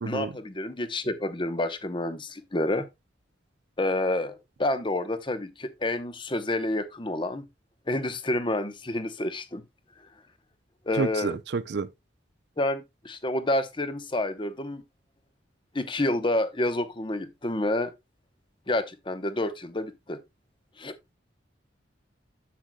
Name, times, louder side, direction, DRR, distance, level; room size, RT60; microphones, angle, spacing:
voice 1, 0.0-2.9 3.8-7.5 7.9-9.6 10.9-11.4 12.6-14.8 15.7-17.9 18.7-20.2 20.8-21.0, left 1 dB, 25° left, 0.8 m, -29 dB
voice 2, 11.0-11.9, right 4 dB, 55° right, 0.5 m, -29 dB
10.0 x 7.9 x 2.2 m
head